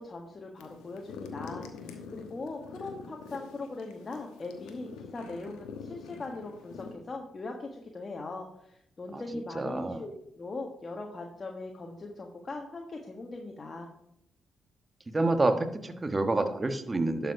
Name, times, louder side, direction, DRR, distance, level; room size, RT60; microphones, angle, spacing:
voice 1, 0.0-13.9, left 3 dB, 40° left, 1 dB, 1.5 m, -40 dB
sound 1, 0.6-7.0, left 5 dB, 85° left, 1.1 m, -45 dB
voice 2, 9.5-10.0 15.1-17.3, right 2 dB, 30° right, 8 dB, 1.3 m, -28 dB
11.5 x 5.3 x 4.9 m, 0.76 s
hypercardioid pair, 50°, 0 cm